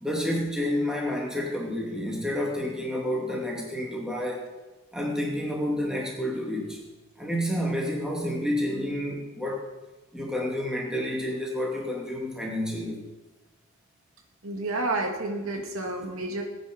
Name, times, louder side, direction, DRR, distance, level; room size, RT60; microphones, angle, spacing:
voice 1, 0.0-4.5 4.9-6.8 7.2-9.7 10.1-13.0, left 1 dB, 5° right, -2 dB, 2.5 m, -29 dB
voice 2, 14.4-16.4, right 2 dB, 85° right, 2 dB, 2.3 m, -30 dB
19.0 x 9.2 x 5.4 m, 1.2 s
head